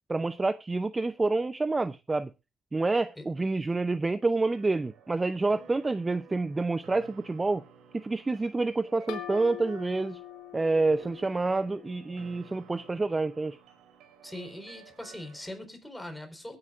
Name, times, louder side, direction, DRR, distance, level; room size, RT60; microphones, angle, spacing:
voice 1, 0.1-2.3 2.7-7.6 7.9-10.2 10.5-13.6, right 3 dB, 20° right, 0.5 m, -28 dB
sound 1, 4.5-15.6, right 6 dB, 90° right, 3.4 m, -54 dB
sound 2, 9.1-12.6, left 13 dB, 90° left, 1.9 m, -44 dB
voice 2, 14.2-16.6, left 1 dB, 5° left, 4.1 m, -41 dB
22.0 x 9.8 x 2.4 m
cardioid pair, 90°, 0 cm